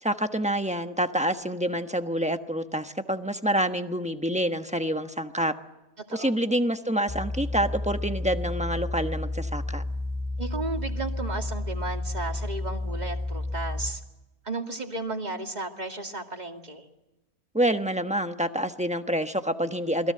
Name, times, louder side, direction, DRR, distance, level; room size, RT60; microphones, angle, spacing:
voice 1, 0.0-5.5 6.1-9.8 17.5-20.1, equal, 5° right, 7 dB, 1.0 m, -27 dB
voice 2, 6.1-6.4 10.4-14.0 14.4-16.9, right 3 dB, 30° right, 4 dB, 2.5 m, -34 dB
sound 1, 7.1-13.9, left 2 dB, 25° left, 2.3 m, -31 dB
27.5 x 21.5 x 7.8 m, 1.0 s
omnidirectional pair, 1.6 m